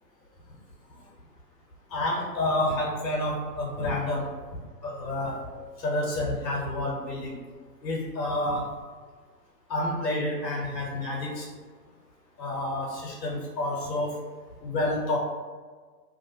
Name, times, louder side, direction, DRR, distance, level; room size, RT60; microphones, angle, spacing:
voice 1, 1.9-4.3 4.8-5.4 5.8-7.4 7.8-8.7 9.7-11.5 12.4-14.2 14.6-15.2, left 1 dB, 75° left, -3 dB, 0.8 m, -29 dB
2.5 x 2.1 x 2.7 m, 1.5 s
figure-of-eight pair, 135°, 50 cm